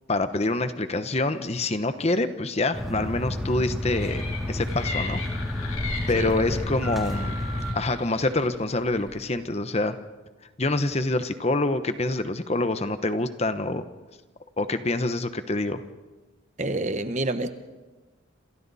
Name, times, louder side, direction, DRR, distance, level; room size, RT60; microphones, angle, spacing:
voice 1, 0.1-5.2 5.5-5.7 6.1-7.4 7.7-10.0 10.6-13.8 14.6-15.8, left 2 dB, 30° left, 10 dB, 0.9 m, -26 dB
sound 1, 2.7-7.7, left 1 dB, ahead, 3.4 m, -30 dB
sound 2, 3.9-9.3, left 4 dB, 90° left, 3.7 m, -38 dB
voice 2, 6.1-6.7 16.6-17.6, right 2 dB, 35° right, 9 dB, 1.1 m, -29 dB
28.0 x 27.5 x 4.2 m, 1.2 s
head